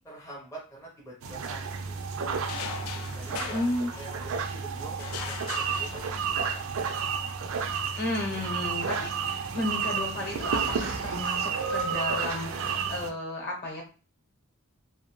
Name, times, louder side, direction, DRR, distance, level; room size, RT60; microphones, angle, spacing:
voice 1, 0.0-1.9 2.5-2.8 3.1-6.7, right 2 dB, 15° left, -4 dB, 0.5 m, -46 dB
sound 1, 1.2-13.1, right 6 dB, 65° right, 0.4 m, -31 dB
sound 2, 2.5-4.5 5.0-6.5, left 8 dB, 80° left, 0.3 m, -40 dB
voice 2, 3.5-3.9 8.0-13.8, left 1 dB, 50° left, 0 dB, 0.9 m, -33 dB
2.4 x 2.1 x 2.9 m, 0.36 s
head